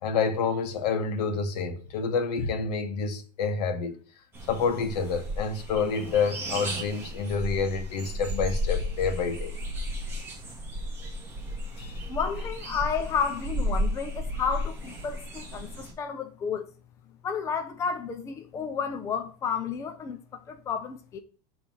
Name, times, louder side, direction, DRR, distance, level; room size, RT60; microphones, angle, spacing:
voice 1, 0.0-3.9 4.5-9.5 11.8-12.0, left 5 dB, 75° left, 1.4 m, -28 dB
sound 1, 4.3-15.9, equal, 10° right, 1.6 m, -33 dB
voice 2, 12.1-16.7 17.2-21.2, left 6 dB, 15° left, 0.5 m, -31 dB
7.1 x 3.4 x 6.1 m
supercardioid pair, 165°, 21 cm